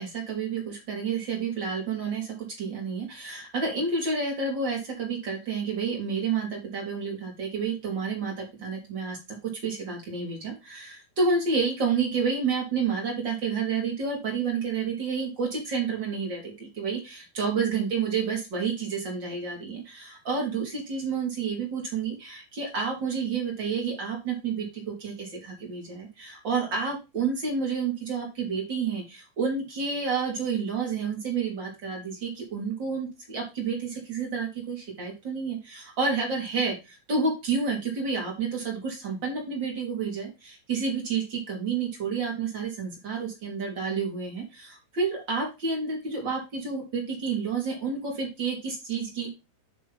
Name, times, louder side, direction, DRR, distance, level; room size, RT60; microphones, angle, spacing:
voice 1, 0.0-9.2 9.4-49.3, right 5 dB, 35° right, -2 dB, 2.0 m, -30 dB
9.4 x 3.4 x 5.3 m, 0.26 s
omnidirectional pair, 5.7 m